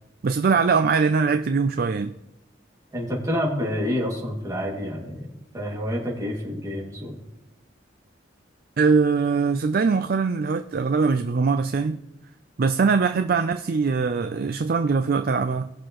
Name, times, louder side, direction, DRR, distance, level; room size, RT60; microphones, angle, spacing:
voice 1, 0.2-2.1 8.8-12.0 12.6-15.7, right 5 dB, 50° right, 8 dB, 0.4 m, -22 dB
voice 2, 2.9-7.2, equal, 20° right, -3 dB, 2.3 m, -28 dB
19.0 x 6.5 x 3.1 m, 0.93 s
head